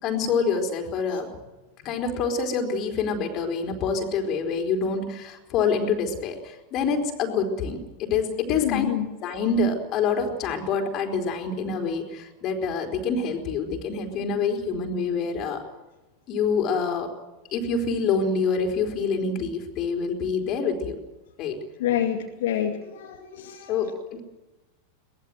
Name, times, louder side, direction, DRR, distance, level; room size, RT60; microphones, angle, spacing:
voice 1, 0.0-1.3 1.8-8.8 9.2-15.6 16.3-17.1 17.5-21.0 21.4-21.6 23.7-24.2, left 5 dB, 35° left, 4 dB, 4.4 m, -26 dB
voice 2, 8.5-9.1 21.8-23.8, left 10 dB, 55° left, 1 dB, 2.3 m, -27 dB
23.0 x 19.5 x 7.9 m, 1.1 s
figure-of-eight pair, 90°, 0 cm